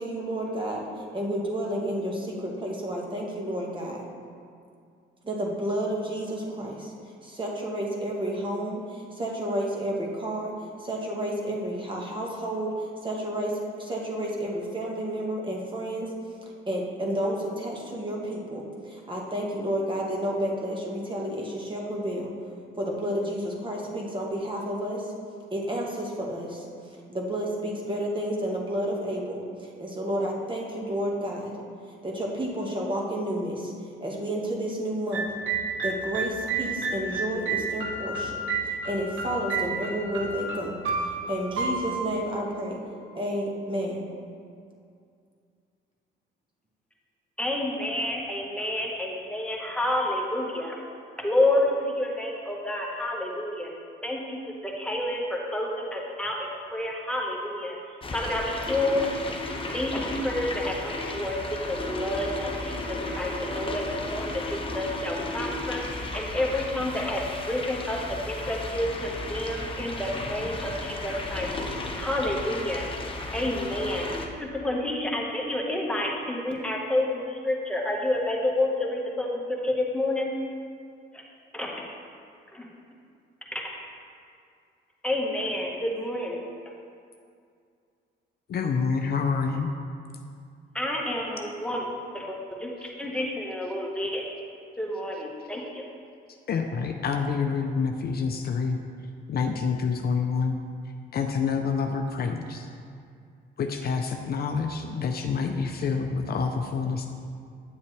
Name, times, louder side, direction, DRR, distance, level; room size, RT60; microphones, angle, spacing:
voice 1, 0.0-4.0 5.2-6.9 7.2-10.5 10.8-13.5 13.8-16.1 16.7-22.3 22.8-25.1 25.5-26.6 27.1-31.5 32.0-33.7 34.0-35.3 35.8-42.8 43.1-44.0, right 1 dB, 25° right, -3 dB, 1.7 m, -31 dB
sound 1, 35.1-43.1, right 3 dB, 80° right, 1.0 m, -31 dB
voice 2, 47.4-50.8 51.2-53.7 54.0-54.4 54.6-57.7 58.1-59.1 59.7-61.4 61.7-62.8 63.2-63.8 64.1-67.2 67.5-71.5 72.0-72.9 73.3-74.1 74.4-79.3 79.6-80.3 81.5-81.7 82.5-82.6 83.5-83.6 85.0-86.4 90.7-91.8 92.1-94.2 94.8-95.8, left 1 dB, 5° left, -2 dB, 1.4 m, -29 dB
sound 2, 58.0-74.3, left 2 dB, 25° left, 0.9 m, -34 dB
voice 3, 88.5-89.7 96.5-98.8 99.3-100.6 101.1-102.7 103.6-107.1, left 5 dB, 50° left, 4 dB, 0.6 m, -27 dB
9.3 x 7.2 x 3.3 m, 2.3 s
cardioid pair, 90°, 20 cm